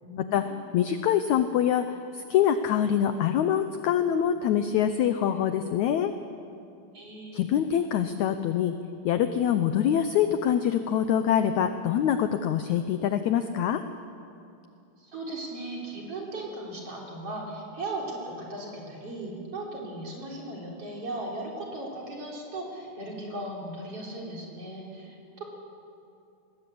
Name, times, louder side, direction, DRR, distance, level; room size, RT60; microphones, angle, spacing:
voice 1, 0.0-0.6 6.9-7.5 15.0-25.4, right 2 dB, 40° right, -2 dB, 4.6 m, -37 dB
voice 2, 0.7-6.1 7.3-8.7 9.0-13.8, left 9 dB, 85° left, 9 dB, 1.6 m, -25 dB
20.5 x 19.5 x 8.5 m, 2.6 s
omnidirectional pair, 4.3 m